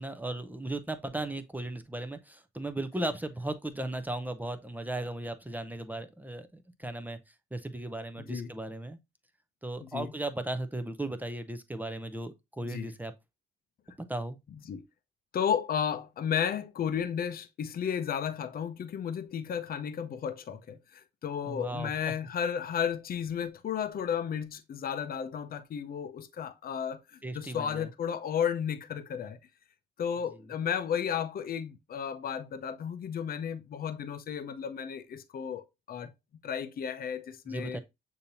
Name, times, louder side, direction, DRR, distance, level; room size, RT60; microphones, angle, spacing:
voice 1, 0.0-7.2 7.5-9.0 9.6-13.1 14.1-14.4 21.4-21.9 27.2-27.9 37.5-37.8, right 1 dB, 10° right, 0.5 m, -36 dB
voice 2, 8.2-8.5 9.8-10.1 12.6-12.9 14.5-14.9 15.3-29.4 30.0-36.1 36.4-37.8, left 8 dB, 50° left, 0.6 m, -33 dB
6.7 x 2.8 x 2.6 m
cardioid pair, 90°, 20 cm